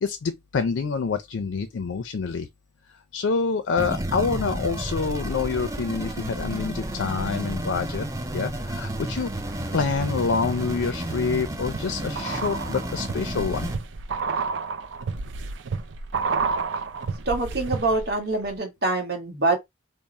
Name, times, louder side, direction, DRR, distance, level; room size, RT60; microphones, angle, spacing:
voice 1, 0.0-2.5 3.1-8.1 8.3-9.3 9.7-13.7, left 5 dB, 85° left, 0.4 m, -27 dB
sound 1, 3.8-13.8, right 1 dB, 15° right, 0.5 m, -31 dB
sound 2, 9.1-9.9 10.3-18.2 18.4-18.5, right 4 dB, 75° right, 0.5 m, -31 dB
voice 2, 17.3-19.6, right 3 dB, 55° right, 1.5 m, -25 dB
3.5 x 2.0 x 4.1 m
head